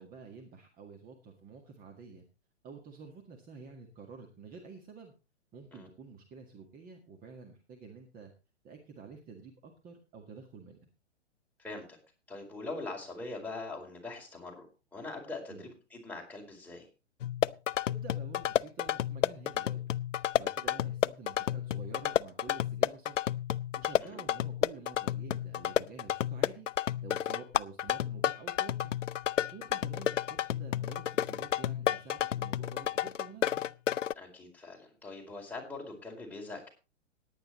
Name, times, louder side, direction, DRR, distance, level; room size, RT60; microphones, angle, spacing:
voice 1, 0.0-2.3 2.6-5.1 5.5-8.3 8.6-10.9 15.5-15.7 17.9-19.8 20.3-23.3 23.7-26.7 27.0-29.0 29.5-33.7, right 5 dB, 25° right, 3 dB, 1.8 m, -49 dB
voice 2, 11.6-12.0 12.3-14.7 14.9-16.9 24.0-24.2 34.2-36.7, left 3 dB, 5° left, -2 dB, 4.5 m, -42 dB
sound 1, 17.2-34.1, left 11 dB, 85° left, 0.5 m, -31 dB
17.5 x 9.9 x 3.1 m, 0.31 s
hypercardioid pair, 120°, 36 cm